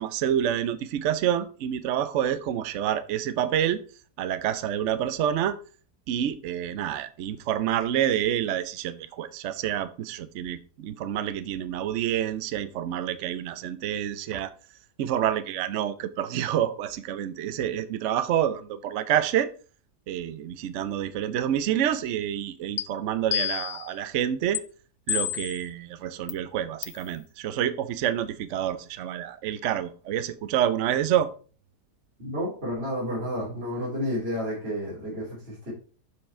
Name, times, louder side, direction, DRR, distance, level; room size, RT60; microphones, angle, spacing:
voice 1, 0.0-3.8 4.2-5.6 6.1-14.5 15.0-19.5 20.1-24.6 25.1-31.3, right 10 dB, 65° right, 0.7 m, -28 dB
sound 1, 22.8-22.9 23.3-23.9 24.5-24.6 25.1-25.6 26.3-26.4 26.8-27.0, left 11 dB, 60° left, 0.8 m, -29 dB
voice 2, 32.2-35.7, equal, 35° right, 3.2 m, -31 dB
7.2 x 4.8 x 4.4 m
omnidirectional pair, 1.8 m